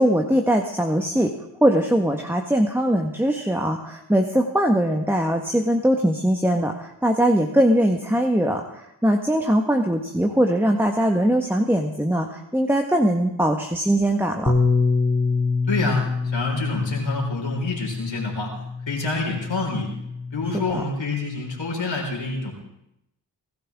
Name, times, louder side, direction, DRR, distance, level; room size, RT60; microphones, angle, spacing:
voice 1, 0.0-1.3 1.6-14.5 20.5-20.8, equal, 5° right, 3 dB, 1.5 m, -21 dB
Bass guitar, 14.5-20.7, left 4 dB, 25° left, 2.2 m, -25 dB
voice 2, 15.7-18.6 18.9-19.9 20.3-22.5, left 3 dB, 85° left, 0 dB, 4.8 m, -27 dB
24.5 x 13.5 x 3.7 m, 0.84 s
cardioid pair, 45°, 44 cm